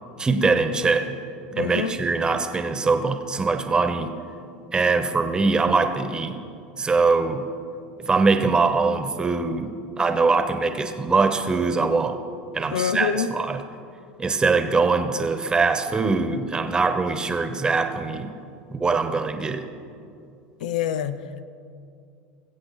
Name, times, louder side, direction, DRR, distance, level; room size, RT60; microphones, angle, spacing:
voice 1, 0.2-1.1 1.5-4.1 4.7-6.4 6.8-7.5 8.0-12.2 12.5-13.6 14.2-18.3 18.7-19.6, right 4 dB, 20° right, 8 dB, 1.2 m, -22 dB
voice 2, 1.6-1.9 12.7-13.3 20.6-21.4, left 8 dB, 85° left, 12 dB, 0.6 m, -26 dB
22.0 x 7.9 x 4.3 m, 2.4 s
supercardioid pair, 100°, 4 cm